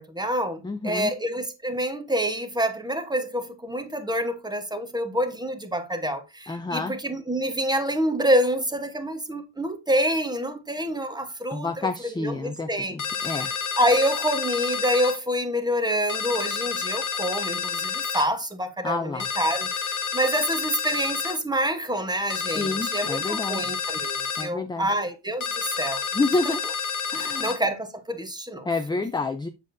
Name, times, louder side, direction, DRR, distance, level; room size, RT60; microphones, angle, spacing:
voice 1, 0.0-11.9 12.2-26.0 26.4-26.6 27.2-28.7, equal, 10° right, 1.0 m, -27 dB
voice 2, 0.6-1.1 6.5-6.9 11.5-13.5 18.8-19.3 22.5-23.6 24.4-24.9 26.1-26.6 27.1-27.5 28.6-29.5, left 3 dB, 10° left, 0.3 m, -28 dB
sound 1, 13.0-15.2 16.1-18.3 19.2-21.4 22.3-24.5 25.4-27.6, left 6 dB, 40° left, 1.1 m, -29 dB
7.4 x 6.6 x 2.6 m
cardioid pair, 140°, 46 cm